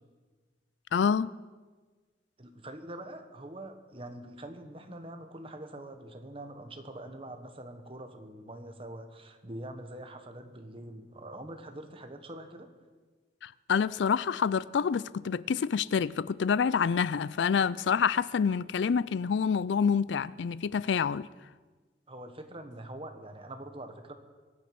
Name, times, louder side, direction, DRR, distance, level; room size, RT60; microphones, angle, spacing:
voice 1, 0.9-1.3 13.4-21.3, left 6 dB, 75° left, 0.4 m, -27 dB
voice 2, 2.4-12.7 22.1-24.1, right 1 dB, 30° right, 1.4 m, -44 dB
23.0 x 9.5 x 6.0 m
head